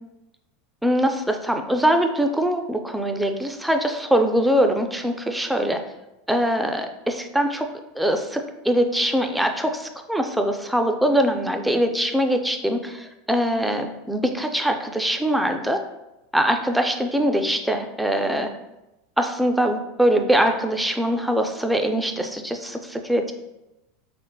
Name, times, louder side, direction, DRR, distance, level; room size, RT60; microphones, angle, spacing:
voice 1, 0.8-5.8 6.3-7.7 8.0-15.8 16.3-18.5 19.2-23.3, equal, 5° right, 5 dB, 0.3 m, -22 dB
3.8 x 2.1 x 2.2 m, 0.94 s
hypercardioid pair, 100°, 0 cm